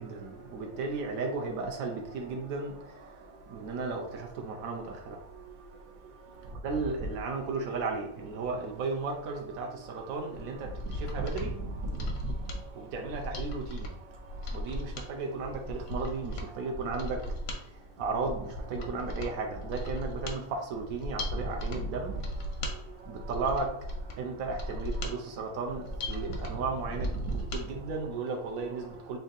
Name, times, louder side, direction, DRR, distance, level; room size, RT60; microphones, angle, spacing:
voice 1, 0.0-29.2, right 3 dB, 90° right, 1.0 m, -35 dB
Mechanisms, 10.6-27.6 28.0-28.1, equal, 90° left, 1.2 m, -38 dB
3.5 x 2.6 x 3.8 m
omnidirectional pair, 1.4 m